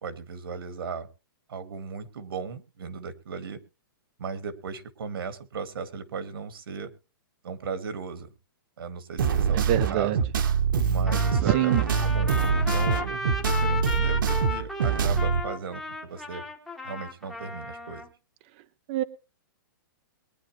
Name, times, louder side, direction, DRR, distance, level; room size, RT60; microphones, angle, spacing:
voice 1, 0.0-1.1 1.5-3.6 4.2-6.9 7.4-8.3 8.8-10.3 10.8-13.0 13.4-16.4 16.8-18.0, right 5 dB, 75° right, 11 dB, 2.0 m, -36 dB
sound 1, 9.2-15.4, right 6 dB, 60° right, 1.3 m, -24 dB
voice 2, 9.5-10.2 11.4-11.8 18.9-19.0, right 13 dB, 25° right, 9 dB, 0.6 m, -24 dB
Trumpet, 11.1-18.1, left 3 dB, 5° left, 1.1 m, -35 dB
22.5 x 10.0 x 3.1 m, 0.30 s
hypercardioid pair, 175°, 12 cm